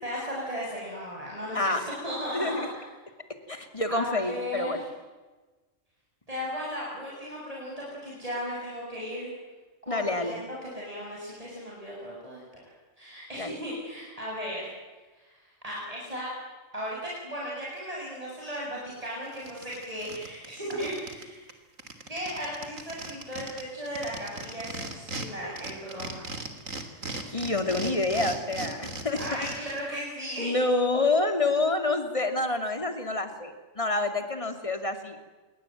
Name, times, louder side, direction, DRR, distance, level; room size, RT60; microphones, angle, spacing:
voice 1, 0.0-2.8 3.9-4.8 6.3-9.3 9.8-12.4 13.0-14.7 15.3-16.3 16.7-21.5 22.1-26.3 29.2-30.6, equal, 25° right, -4 dB, 7.4 m, -36 dB
voice 2, 2.3-2.7 3.5-4.8 9.9-10.4 13.4-13.6 27.3-29.2 30.4-35.2, left 2 dB, 25° left, 7 dB, 2.9 m, -27 dB
sound 1, 18.9-19.0 19.3-21.2 21.5-21.6 21.8-25.3 25.6-29.8, right 2 dB, 85° right, 3.5 m, -37 dB
28.0 x 23.0 x 9.2 m, 1.3 s
omnidirectional pair, 1.3 m